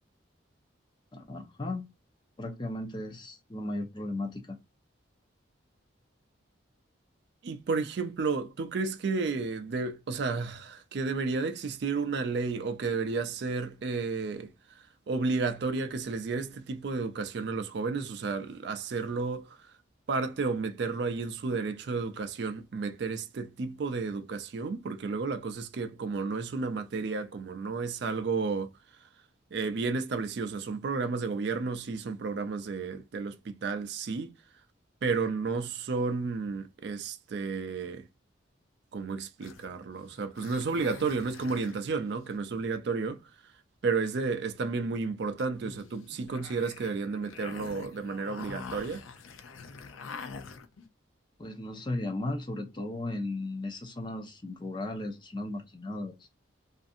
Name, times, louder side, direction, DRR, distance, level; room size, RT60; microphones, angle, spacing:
voice 1, 1.1-1.9 2.4-4.6 51.4-56.3, left 2 dB, 25° left, 0.4 m, -36 dB
voice 2, 7.4-19.7 20.1-28.7 29.5-34.3 35.0-38.1 38.9-43.2 43.8-49.1, right 4 dB, 60° right, 0.4 m, -32 dB
sound 1, 39.4-42.4 45.4-50.9, left 5 dB, 85° left, 0.4 m, -46 dB
2.5 x 2.5 x 2.4 m
head